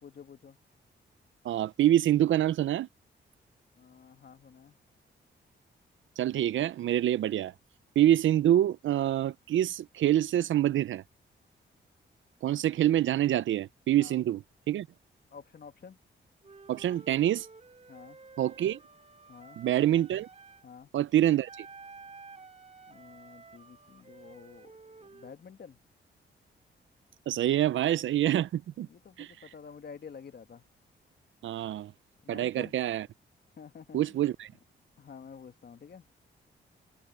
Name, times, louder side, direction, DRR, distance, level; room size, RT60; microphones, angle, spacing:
voice 1, 0.0-0.6 3.8-4.7 14.0-14.2 15.3-16.0 17.9-18.2 19.3-19.6 20.6-20.9 22.9-24.7 25.0-25.8 28.9-30.6 32.2-32.7 33.6-34.0 35.0-36.0, left 6 dB, 55° left, 1.7 m, -49 dB
voice 2, 1.4-2.9 6.2-7.5 8.0-11.0 12.4-14.9 16.7-17.5 18.4-18.8 19.6-20.3 20.9-21.7 27.3-28.9 29.2-29.3 31.4-31.9 32.3-33.1 33.9-34.5, right 12 dB, 75° right, 0.5 m, -26 dB
Wind instrument woodwind instrument, 16.4-20.7 21.4-25.3, right 4 dB, 35° right, 3.3 m, -52 dB
cardioid pair, 75°, 20 cm